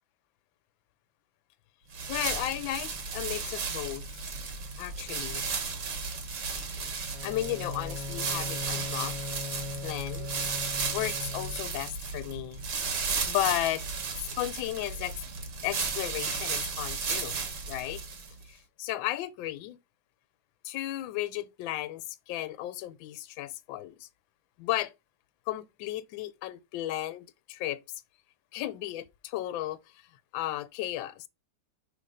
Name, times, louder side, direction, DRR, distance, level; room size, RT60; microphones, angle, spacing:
sound 1, 1.9-18.4, right 5 dB, 45° right, 1.2 m, -34 dB
voice 1, 2.1-4.0 4.8-5.5 6.9-9.3 9.8-10.3 10.9-12.7 13.3-13.8 14.4-15.1 15.6-17.4 17.7-18.0 18.5-19.8 20.6-24.1 24.6-24.9 25.5-27.8 28.5-29.8 30.3-31.3, left 14 dB, 80° left, 1.3 m, -34 dB
Bowed string instrument, 7.1-11.9, left 4 dB, 30° right, 1.6 m, -40 dB
6.0 x 3.1 x 4.9 m
omnidirectional pair, 2.1 m